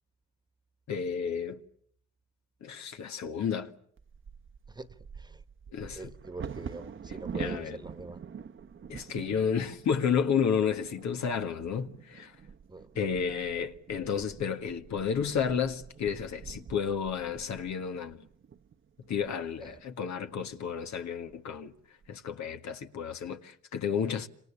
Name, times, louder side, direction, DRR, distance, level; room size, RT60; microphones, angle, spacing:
voice 1, 0.9-1.6 2.6-3.7 5.7-6.1 7.3-7.8 8.9-12.3 13.0-18.2 19.1-21.7 22.1-24.3, left 7 dB, 65° left, 2.0 m, -31 dB
Bird vocalization bird call bird song / Wind / Thunder, 4.0-19.9 20.5-20.6 20.9-21.3 21.8-22.3, right 6 dB, 40° right, 1.1 m, -45 dB
voice 2, 4.7-5.4 5.9-8.2 12.7-13.2 19.6-19.8, right 2 dB, 15° right, 1.6 m, -44 dB
28.5 x 26.5 x 7.2 m
cardioid pair, 90°, 30 cm